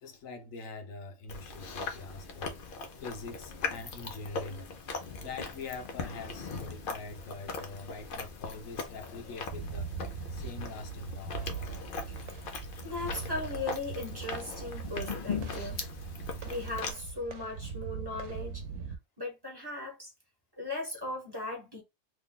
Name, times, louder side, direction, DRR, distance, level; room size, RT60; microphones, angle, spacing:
voice 1, 0.0-4.7 5.2-9.9 10.3-11.5 13.2-13.3, left 4 dB, 85° left, 1.2 m, -44 dB
Chewing mastication, 1.3-16.9, left 4 dB, 50° left, 0.7 m, -40 dB
sound 1, 9.5-19.0, right 5 dB, 80° right, 1.0 m, -40 dB
voice 2, 12.8-15.8 16.4-18.6 19.2-20.1 20.6-21.8, left 2 dB, 20° right, 1.1 m, -38 dB
3.1 x 2.3 x 3.7 m
omnidirectional pair, 1.4 m